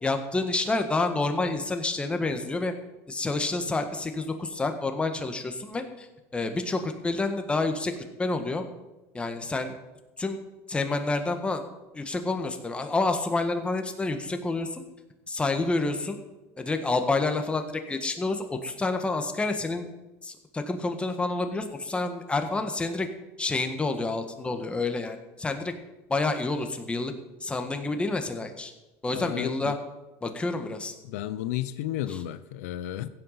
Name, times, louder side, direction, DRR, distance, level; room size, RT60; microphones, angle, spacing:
voice 1, 0.0-2.7 3.1-6.1 6.3-7.9 8.2-8.7 9.1-9.7 10.2-10.4 10.7-11.6 11.9-14.8 15.3-16.2 16.6-19.9 20.2-23.1 23.4-25.7 26.1-27.1 27.4-28.7 29.0-29.8 30.2-30.9 32.1-32.2, left 3 dB, 15° left, 1.5 m, -28 dB
voice 2, 29.1-29.8 31.0-33.1, left 13 dB, 90° left, 0.7 m, -33 dB
16.0 x 7.9 x 5.8 m
supercardioid pair, 120°, 8 cm